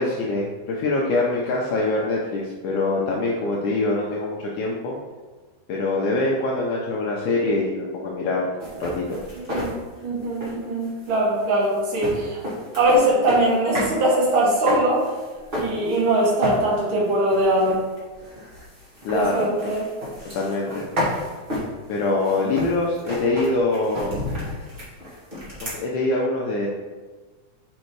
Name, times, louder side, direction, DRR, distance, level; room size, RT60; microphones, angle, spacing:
voice 1, 0.0-5.0 5.7-8.5 8.8-9.2 19.0-19.5 20.3-20.9 21.9-24.1 25.6-26.7, left 2 dB, 75° left, -2 dB, 1.9 m, -24 dB
sound 1, 8.6-14.0 14.2-16.1 16.4-16.9 17.2-25.8, left 1 dB, 25° right, 1.3 m, -32 dB
voice 2, 10.0-12.4 12.8-15.0 15.5-17.9 19.1-19.8, right 1 dB, 45° right, -6 dB, 2.0 m, -21 dB
5.6 x 5.3 x 4.6 m, 1.3 s
omnidirectional pair, 4.1 m